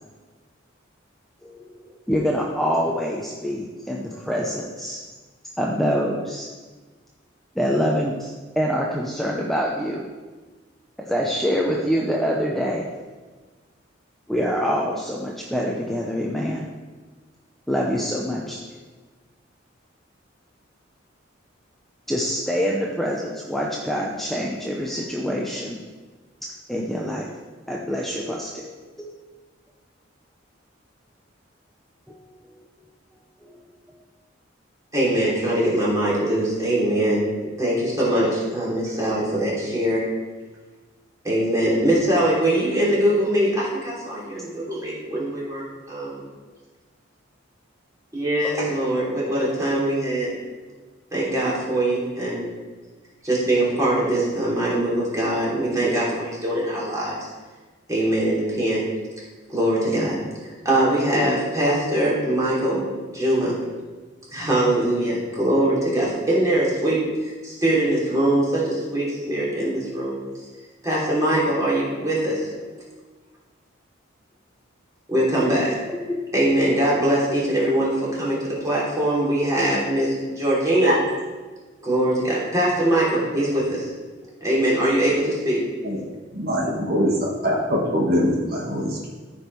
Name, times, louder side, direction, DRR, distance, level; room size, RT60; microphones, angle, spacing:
voice 1, 1.4-5.0 5.6-6.5 7.6-10.0 11.0-13.0 14.3-16.7 17.7-18.6 22.1-25.8 26.7-27.4 27.7-29.2 32.1-32.2 32.4-32.5 33.4-33.5 39.1-39.5 72.6-72.7 75.9-76.2 84.2-84.3, equal, ahead, -3 dB, 0.7 m, -26 dB
voice 2, 34.9-37.3 37.6-40.0 41.2-46.2 48.1-50.3 51.1-52.5 53.2-57.2 57.9-58.9 59.5-60.2 60.6-63.6 64.3-67.0 67.4-70.2 70.8-72.5 75.1-75.8 76.3-80.9 81.8-83.9 84.4-85.6, right 1 dB, 15° right, -6 dB, 3.1 m, -22 dB
voice 3, 86.3-89.2, equal, 50° right, -2 dB, 1.5 m, -23 dB
14.0 x 5.4 x 4.7 m, 1.3 s
head